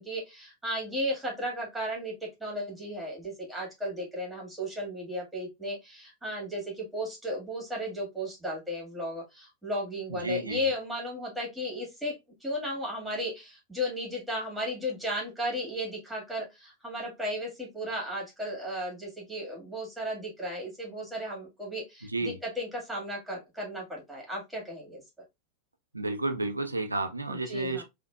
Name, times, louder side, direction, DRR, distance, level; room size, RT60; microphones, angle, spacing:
voice 1, 0.0-2.1 2.4-25.0 27.3-27.8, equal, 5° right, 1.8 m, -35 dB
voice 2, 10.1-10.6 22.1-22.4 25.9-27.8, right 2 dB, 80° right, 0.5 m, -31 dB
3.7 x 2.5 x 2.2 m
figure-of-eight pair, 90°, 0 cm